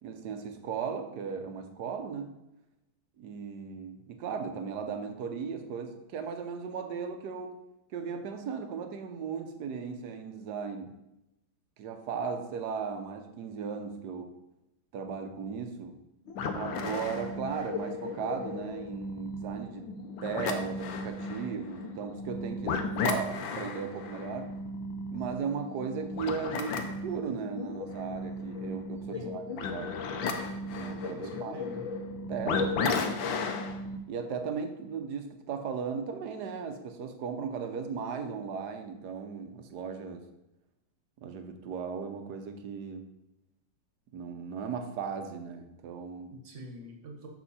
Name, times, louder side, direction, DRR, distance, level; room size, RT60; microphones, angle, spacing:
voice 1, 0.0-2.4 3.2-7.5 7.9-10.9 11.8-14.3 14.9-16.0 16.5-24.5 25.1-30.0 30.7-31.6 32.3-33.4 34.1-40.2 41.2-43.1 44.1-46.3, right 6 dB, 60° right, 7 dB, 1.2 m, -37 dB
sound 1, 16.3-34.0, left 3 dB, 75° left, 1.5 m, -35 dB
voice 2, 29.1-29.4 31.1-31.8 46.4-47.3, equal, 40° right, 2 dB, 1.4 m, -45 dB
7.3 x 6.3 x 4.2 m, 0.90 s
omnidirectional pair, 2.2 m